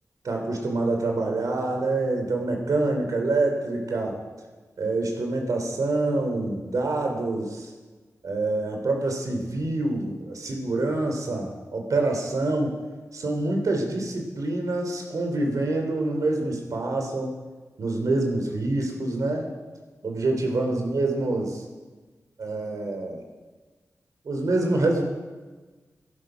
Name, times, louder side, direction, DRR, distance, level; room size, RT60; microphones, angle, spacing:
voice 1, 0.2-4.2 4.8-7.7 8.2-12.7 13.1-17.3 17.8-19.5 20.0-21.6 22.4-23.2 24.2-25.0, right 2 dB, 85° right, 2 dB, 2.9 m, -26 dB
14.0 x 11.5 x 6.1 m, 1.3 s
wide cardioid pair, 85°, 6 cm